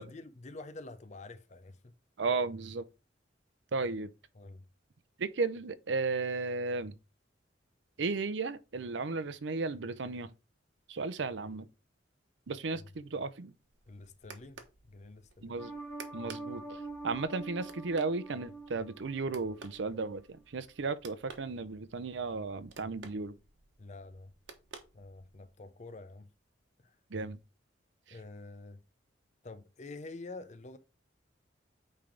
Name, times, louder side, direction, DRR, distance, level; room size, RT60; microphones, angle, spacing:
voice 1, 0.0-1.9 4.4-4.6 13.9-14.6 14.9-15.6 23.8-24.3 24.9-26.3 26.8-27.0 28.1-28.8 29.4-30.8, left 2 dB, 40° left, 0.6 m, -47 dB
voice 2, 2.2-2.9 3.7-4.1 5.2-6.9 8.0-10.3 10.9-11.7 12.5-13.5 15.4-15.7 16.1-23.4 27.1-27.4, right 3 dB, 70° right, 0.6 m, -34 dB
sound 1, 13.6-25.5, right 4 dB, 90° right, 1.1 m, -55 dB
sound 2, 15.6-19.8 20.2-20.3, right 3 dB, 15° left, 1.5 m, -45 dB
8.9 x 3.4 x 3.8 m
head